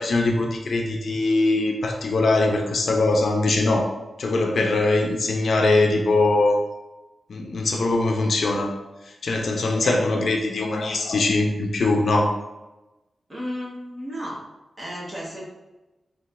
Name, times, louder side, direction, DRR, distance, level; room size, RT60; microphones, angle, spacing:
voice 1, 0.0-3.9 4.2-6.6 7.3-8.7 9.1-12.4, left 2 dB, 60° left, 2 dB, 0.5 m, -22 dB
voice 2, 9.8-10.2 13.3-14.4 14.8-15.5, equal, 20° right, -5 dB, 1.2 m, -33 dB
4.8 x 3.2 x 2.5 m, 1.0 s
wide cardioid pair, 170°, 0 cm